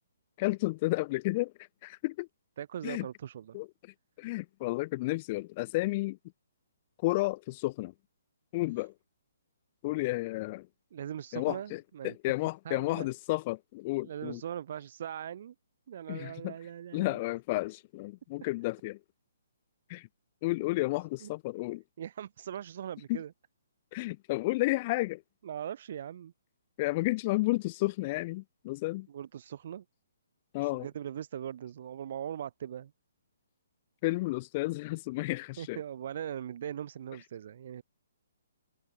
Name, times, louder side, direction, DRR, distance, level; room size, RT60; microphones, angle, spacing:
voice 1, 0.4-1.5 1.8-2.3 2.8-3.1 3.5-3.7 4.2-6.2 7.0-7.9 8.5-8.9 9.8-10.7 11.3-14.4 16.1-16.5 16.9-19.0 19.9-20.1 20.4-21.8 23.1-23.2 23.9-25.2 26.8-29.1 30.5-30.9 34.0-35.8, left 21 dB, 35° left, 1.0 m, -32 dB
voice 2, 2.6-3.6 10.9-12.3 12.6-13.1 14.0-15.5 15.9-17.2 17.5-17.6 21.2-21.3 22.0-23.3 25.4-26.3 29.1-29.8 30.6-32.9 35.6-37.8, right 9 dB, 55° right, 3.1 m, -40 dB
hypercardioid pair, 145°, 0 cm